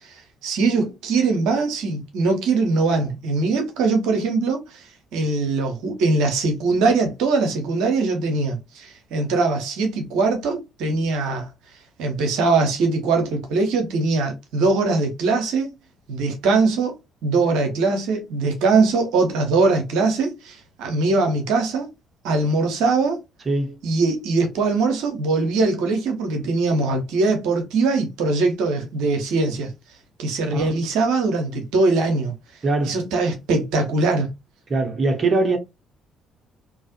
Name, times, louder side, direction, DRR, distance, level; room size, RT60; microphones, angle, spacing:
voice 1, 0.4-4.8 5.1-11.5 12.0-15.7 16.1-16.9 17.2-21.9 22.2-23.2 23.8-29.7 30.2-32.3 32.8-34.3, right 3 dB, 75° right, 0.8 m, -21 dB
voice 2, 23.5-23.8 30.5-30.8 32.6-33.0 34.7-35.6, right 3 dB, 40° right, 0.8 m, -22 dB
2.4 x 2.4 x 2.7 m
hypercardioid pair, 50°, 0 cm